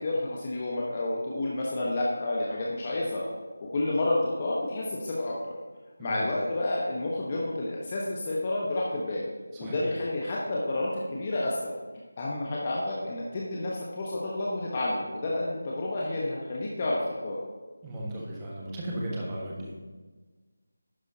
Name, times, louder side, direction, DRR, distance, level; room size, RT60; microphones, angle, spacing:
voice 1, 0.0-3.2 3.6-5.5 6.0-9.3 9.6-11.7 12.2-17.4, left 2 dB, 25° left, -4 dB, 1.2 m, -30 dB
voice 2, 17.8-19.7, right 1 dB, 10° right, -5 dB, 1.6 m, -35 dB
11.5 x 9.4 x 2.8 m, 1.4 s
figure-of-eight pair, 160°, 0 cm